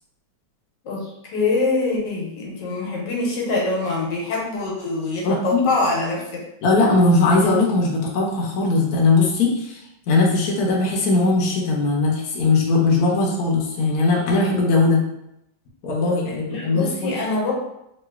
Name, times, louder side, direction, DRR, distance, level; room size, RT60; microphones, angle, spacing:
voice 1, 0.8-6.4 16.5-17.5, left 3 dB, 90° left, -2 dB, 1.5 m, -24 dB
voice 2, 5.2-5.6 6.6-15.0 15.8-17.1, left 3 dB, 65° left, -2 dB, 1.1 m, -19 dB
3.1 x 3.0 x 2.3 m, 0.81 s
omnidirectional pair, 1.9 m